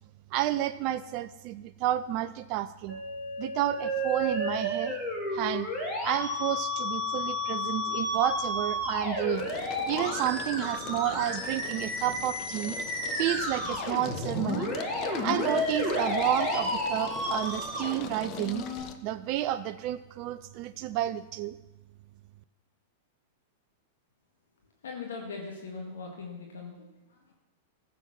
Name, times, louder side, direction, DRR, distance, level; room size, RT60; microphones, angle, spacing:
voice 1, 0.3-3.0 3.4-5.0 5.3-5.7 6.0-9.5 9.9-12.8 13.1-14.7 15.2-18.7 19.0-21.6, right 13 dB, 45° right, 12 dB, 0.4 m, -31 dB
Musical instrument, 2.9-18.8, left 1 dB, 25° left, 4.8 m, -32 dB
sound 1, 6.9-7.4 7.8-19.0, left 7 dB, 40° left, 0.9 m, -43 dB
voice 2, 24.8-26.8 27.1-27.3, left 4 dB, 70° left, 1 dB, 1.9 m, -40 dB
15.0 x 7.1 x 5.9 m, 1.1 s
figure-of-eight pair, 100°, 0 cm